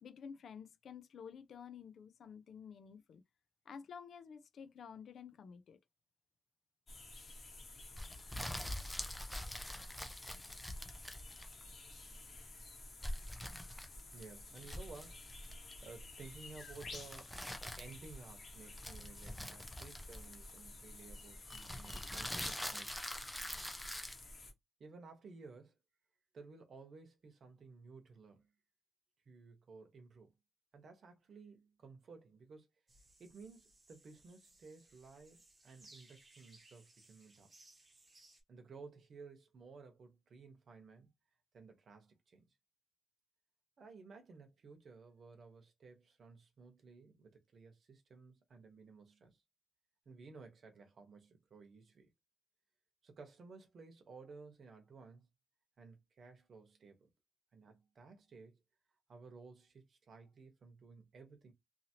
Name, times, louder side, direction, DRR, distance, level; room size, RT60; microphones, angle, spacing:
voice 1, 0.0-3.2 3.7-5.8, left 7 dB, 70° left, 0.4 m, -51 dB
sound 1, 6.9-24.5, left 2 dB, 40° left, 1.0 m, -52 dB
sound 2, 8.0-11.6 13.0-14.2 14.6-15.7 16.8-18.1 18.8-20.6 21.5-24.2, equal, ahead, 0.5 m, -44 dB
voice 2, 14.1-15.3 15.8-17.4 17.8-23.0 24.8-25.8 26.3-28.5 29.3-30.3 30.7-32.7 33.2-37.5 38.5-41.1 41.5-42.5 43.8-49.4 50.1-52.1 53.0-55.3 55.8-57.1 57.5-58.6 59.1-61.5, right 4 dB, 55° right, 0.9 m, -56 dB
sound 3, 32.9-38.4, right 2 dB, 25° right, 0.9 m, -64 dB
2.7 x 2.7 x 2.8 m
wide cardioid pair, 165°, 0 cm